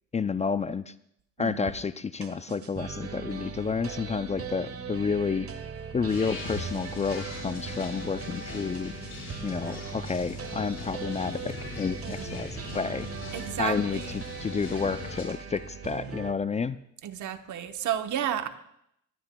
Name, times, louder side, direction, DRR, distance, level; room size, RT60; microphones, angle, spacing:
voice 1, 0.1-0.9 1.4-5.5 5.9-8.9 9.4-13.1 13.6-16.8, left 5 dB, 25° left, 14 dB, 0.4 m, -30 dB
sound 1, 1.7-1.8 2.2-16.3, right 6 dB, 50° right, 1.5 m, -39 dB
sound 2, 6.1-15.2, left 3 dB, 45° left, 4.9 m, -41 dB
voice 2, 13.3-14.2 17.0-18.5, right 10 dB, 75° right, 8 dB, 1.1 m, -32 dB
21.0 x 15.5 x 2.3 m, 0.74 s
cardioid pair, 90°, 30 cm